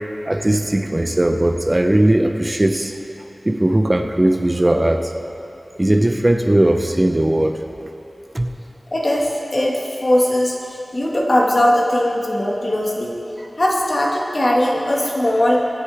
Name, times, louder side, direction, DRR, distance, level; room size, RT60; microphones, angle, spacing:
voice 1, 0.3-2.9 3.4-5.1 5.8-7.6 8.3-8.5, right 1 dB, 30° right, 5 dB, 0.8 m, -18 dB
voice 2, 8.9-13.1 13.6-15.7, left 1 dB, 50° left, -3 dB, 1.8 m, -19 dB
22.5 x 8.1 x 3.5 m, 2.8 s
wide cardioid pair, 55°, 0 cm